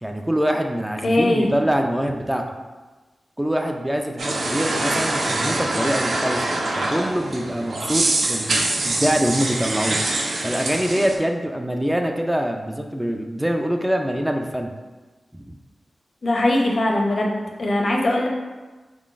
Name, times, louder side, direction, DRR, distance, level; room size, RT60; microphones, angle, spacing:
voice 1, 0.0-2.4 3.4-6.4 6.8-10.1 10.4-14.7 15.3-15.6, equal, 10° right, 3 dB, 0.3 m, -24 dB
voice 2, 1.0-1.5 16.2-17.3 17.6-18.3, left 1 dB, 55° left, 0 dB, 0.6 m, -20 dB
sound 1, 4.2-11.2, right 2 dB, 75° right, 0.6 m, -24 dB
3.9 x 3.8 x 2.5 m, 1.3 s
cardioid pair, 70°, 0 cm